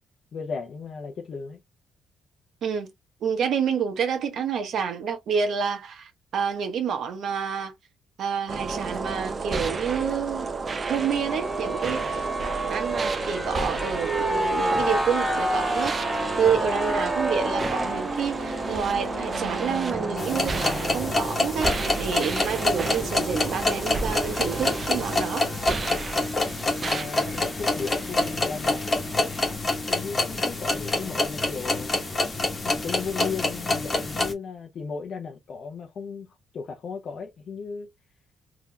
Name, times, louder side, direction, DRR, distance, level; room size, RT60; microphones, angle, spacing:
voice 1, 0.3-1.6 26.8-29.1 29.9-31.9 32.6-36.3 36.5-37.9, left 5 dB, 55° left, 0.6 m, -35 dB
voice 2, 3.2-7.7 8.2-10.5 10.8-25.5, right 7 dB, 65° right, 1.0 m, -28 dB
sound 1, 8.5-27.1, right 4 dB, 35° right, 0.5 m, -32 dB
sound 2, 10.9-29.6, right 1 dB, 15° right, 1.8 m, -32 dB
sound 3, 20.2-34.3, left 2 dB, 30° left, 1.1 m, -27 dB
3.7 x 2.8 x 2.2 m
cardioid pair, 90°, 0 cm